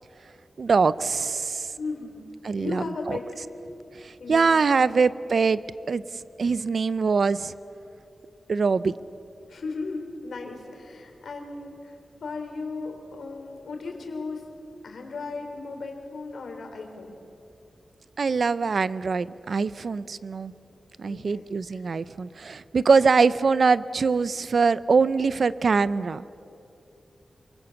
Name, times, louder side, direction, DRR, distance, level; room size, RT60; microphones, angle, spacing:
voice 1, 0.6-1.7 2.4-3.2 4.0-5.6 5.9-6.0 6.4-7.5 8.5-8.9 18.2-20.5 21.0-26.2, right 4 dB, 60° right, 16 dB, 0.5 m, -23 dB
voice 2, 1.8-2.2 2.6-3.3 4.2-5.0 9.5-12.0 12.2-14.5 14.8-17.2 21.0-21.8, left 3 dB, 85° left, 3 dB, 3.7 m, -36 dB
27.0 x 24.5 x 7.1 m, 2.7 s
wide cardioid pair, 145°, 0 cm